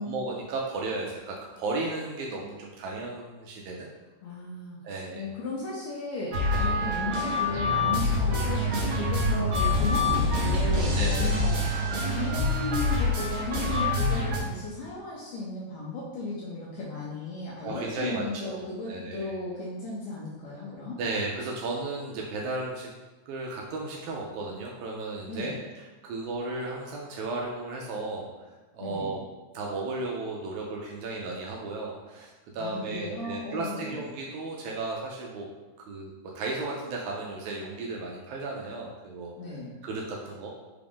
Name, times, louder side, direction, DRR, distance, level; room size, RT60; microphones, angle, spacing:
voice 1, 0.1-3.9 4.8-5.2 6.5-6.7 10.9-11.4 17.6-19.3 21.0-22.9 23.3-28.3 28.7-29.2 29.5-35.5 35.9-39.3 39.8-40.5, right 3 dB, 80° right, -2 dB, 1.7 m, -34 dB
voice 2, 4.2-21.0 25.3-25.6 28.8-29.2 32.6-34.1 39.4-39.7, left 2 dB, 75° left, -5 dB, 1.6 m, -36 dB
sound 1, 6.3-14.4, left 2 dB, 65° right, 1.5 m, -26 dB
5.0 x 2.4 x 3.4 m, 1.2 s
omnidirectional pair, 3.6 m